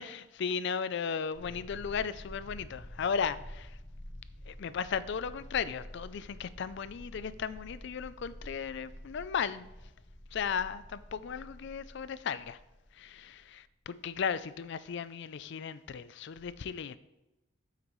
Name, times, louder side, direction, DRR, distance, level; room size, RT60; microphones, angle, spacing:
voice 1, 0.0-3.8 4.5-9.6 10.3-12.6 12.9-17.0, left 6 dB, 60° left, 16 dB, 0.4 m, -35 dB
sound 1, 1.3-13.6, equal, 25° left, 1.1 m, -49 dB
8.9 x 8.3 x 3.1 m, 1.0 s
head